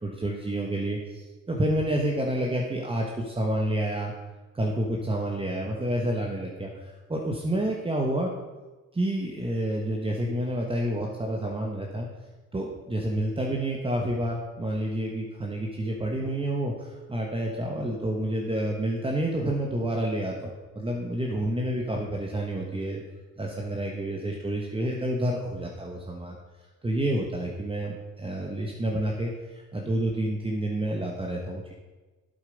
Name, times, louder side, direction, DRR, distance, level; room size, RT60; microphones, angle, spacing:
voice 1, 0.0-4.1 4.5-8.3 8.9-12.1 12.5-23.0 23.4-26.4 26.8-31.7, right 1 dB, 20° right, -1 dB, 1.3 m, -29 dB
8.4 x 7.9 x 5.3 m, 1.2 s
cardioid pair, 90°, 30 cm